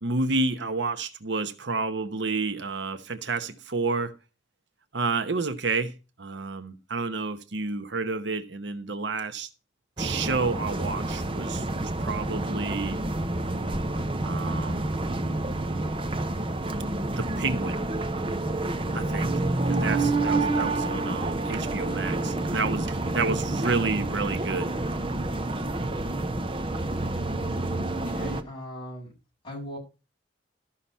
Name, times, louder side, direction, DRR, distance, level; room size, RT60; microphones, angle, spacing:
voice 1, 0.0-4.1 4.9-9.5 10.0-13.0 14.2-15.0 17.1-17.8 18.9-19.3 19.7-24.7, right 3 dB, 75° right, 1.0 m, -30 dB
sound 1, 10.0-28.4, right 2 dB, 30° right, 0.8 m, -28 dB
voice 2, 28.1-29.1 29.4-29.8, equal, 25° left, 6.6 m, -38 dB
13.5 x 5.8 x 5.4 m
head